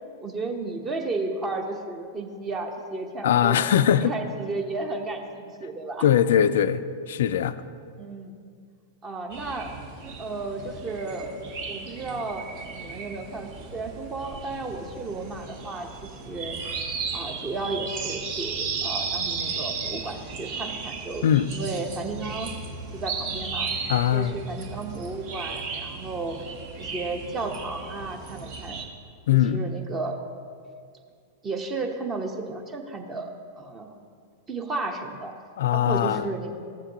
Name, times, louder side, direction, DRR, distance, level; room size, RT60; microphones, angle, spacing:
voice 1, 0.2-6.1 8.0-8.4 9.0-9.7 10.2-11.3 11.7-12.5 12.7-16.6 17.1-22.5 22.9-23.7 24.1-26.4 26.8-28.8 29.3-30.2 31.4-34.0 34.5-35.3 35.7-36.5, right 3 dB, 25° right, 3 dB, 1.0 m, -33 dB
voice 2, 3.2-4.1 6.0-7.6 21.2-21.5 23.9-24.3 29.3-29.7 35.6-36.2, left 10 dB, 60° left, 13 dB, 0.3 m, -21 dB
sound 1, 9.3-28.9, right 5 dB, 45° right, 1.0 m, -35 dB
14.0 x 7.6 x 2.9 m, 2.2 s
figure-of-eight pair, 95°, 0 cm